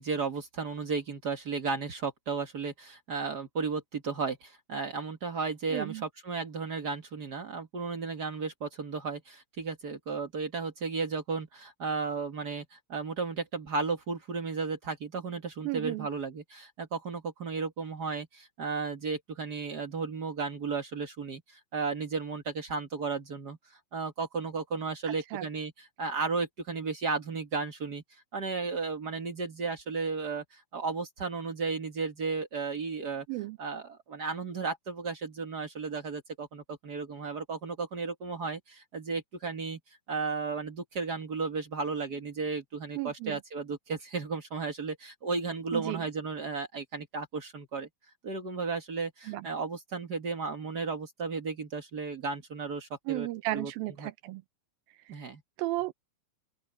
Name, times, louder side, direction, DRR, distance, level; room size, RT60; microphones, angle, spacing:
voice 1, 0.0-23.6 23.9-25.7 26.0-28.0 28.3-33.2 33.6-39.8 40.1-47.9 48.2-53.7 54.0-54.1 55.1-55.4, right 4 dB, 55° right, 1.1 m, -34 dB
voice 2, 5.7-6.0 15.6-16.1 25.1-25.5 33.3-33.6 43.0-43.4 45.7-46.1 49.3-49.5 53.1-54.4 55.1-55.3 55.6-55.9, right 18 dB, 80° right, 2.5 m, -34 dB
open air
omnidirectional pair, 4.3 m